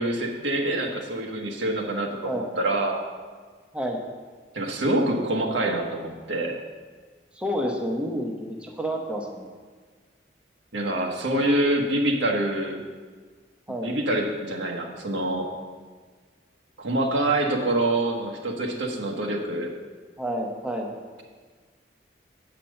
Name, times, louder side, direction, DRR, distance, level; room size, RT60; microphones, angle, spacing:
voice 1, 0.0-3.0 4.5-6.5 10.7-12.8 13.8-15.5 16.8-19.7, right 1 dB, 80° right, 1 dB, 1.4 m, -26 dB
voice 2, 7.3-9.5 13.7-13.9 20.2-20.9, equal, 5° right, 0 dB, 0.8 m, -29 dB
8.3 x 5.7 x 6.4 m, 1.5 s
head